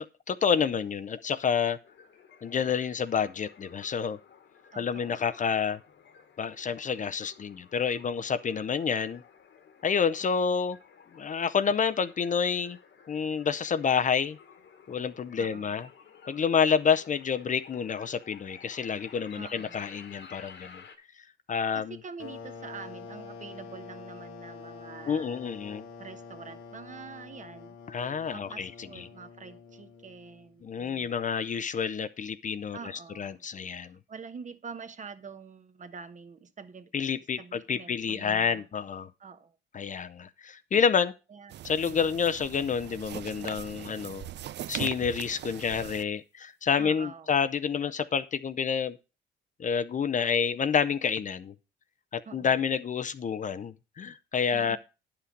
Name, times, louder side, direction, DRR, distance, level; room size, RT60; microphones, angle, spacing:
voice 1, 0.0-1.8 2.4-4.2 4.8-5.8 6.4-9.2 9.8-10.8 11.1-12.8 13.1-14.4 14.9-15.9 16.3-20.8 21.5-22.0 25.1-25.8 27.9-29.1 30.6-32.8 33.2-34.0 36.9-39.1 39.7-41.1 41.6-44.3 44.7-49.0 49.6-51.5 52.1-54.8, left 6 dB, 40° left, 0.6 m, -28 dB
sound 1, 1.8-21.0, left 6 dB, 65° left, 1.5 m, -54 dB
voice 2, 4.7-5.2 10.4-10.5 15.4-15.8 19.3-20.0 20.5-20.6 21.7-25.5 26.0-27.8 28.3-31.2 32.7-33.4 33.8-36.9 37.4-38.7 39.2-39.6 41.3-41.5 46.8-47.3 52.3-52.6 54.5-54.8, right 5 dB, 40° right, 1.1 m, -46 dB
sound 2, 22.2-30.6, left 5 dB, 90° left, 1.4 m, -46 dB
sound 3, 41.5-46.0, right 12 dB, 60° right, 0.5 m, -40 dB
9.9 x 5.8 x 5.1 m
cardioid pair, 90°, 20 cm